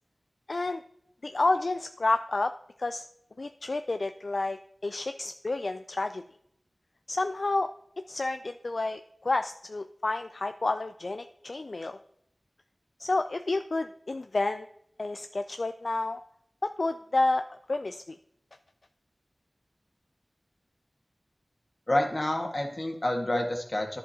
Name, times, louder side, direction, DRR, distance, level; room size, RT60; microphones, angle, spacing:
voice 1, 0.5-0.8 1.2-2.5 2.8-3.1 3.4-6.2 7.1-7.7 8.1-12.0 13.0-14.7 15.0-16.2 16.6-18.2, left 2 dB, 65° left, 9 dB, 0.3 m, -30 dB
voice 2, 21.9-24.0, left 1 dB, 40° left, 2 dB, 1.6 m, -28 dB
11.0 x 7.1 x 2.8 m, 0.74 s
wide cardioid pair, 55°, 0 cm